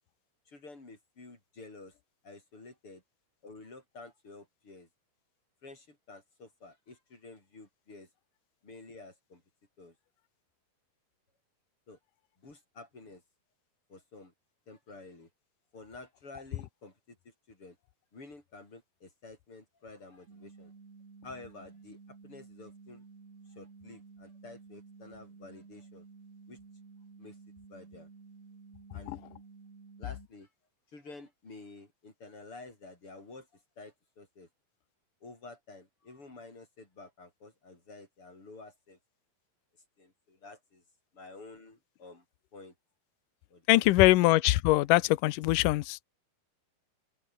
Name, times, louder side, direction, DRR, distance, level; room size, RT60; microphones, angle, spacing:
voice 1, 0.5-1.9 2.2-3.0 3.4-4.9 5.6-8.1 8.6-9.4 9.8-9.9 11.9-12.0 12.4-13.2 13.9-14.3 14.7-15.3 15.7-17.8 18.1-20.7 21.2-23.0 23.5-26.0 26.5-26.6 27.2-27.4 27.7-28.1 28.9-29.1 30.0-30.5 30.9-34.5 35.2-39.0 40.0-40.8 41.1-42.2 42.5-42.7 43.5-44.2, left 3 dB, 30° left, 7.9 m, -50 dB
sound 1, 20.3-30.3, right 4 dB, 40° right, 5.6 m, -53 dB
voice 2, 43.7-46.0, left 18 dB, 85° left, 1.8 m, -23 dB
open air
omnidirectional pair, 4.8 m